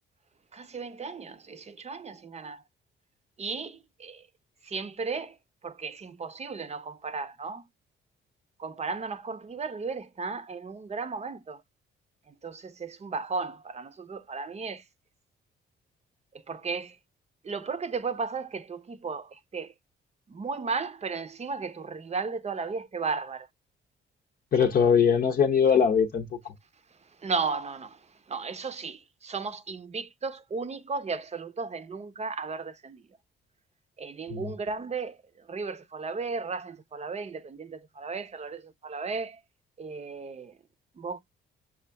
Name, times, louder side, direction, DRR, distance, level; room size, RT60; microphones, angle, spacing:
voice 1, 0.5-2.6 3.4-4.2 4.7-5.3 5.6-7.6 8.6-11.6 12.4-14.8 16.5-16.9 17.5-19.3 19.5-19.7 20.3-23.5 27.2-27.9 28.3-29.0 29.2-33.0 34.0-35.1 35.5-39.4 39.8-40.5 41.0-41.2, right 4 dB, 35° right, 0.8 m, -34 dB
voice 2, 24.5-26.5 34.3-34.5, left 7 dB, 50° left, 0.7 m, -22 dB
6.3 x 2.4 x 3.4 m
cardioid pair, 90°, 20 cm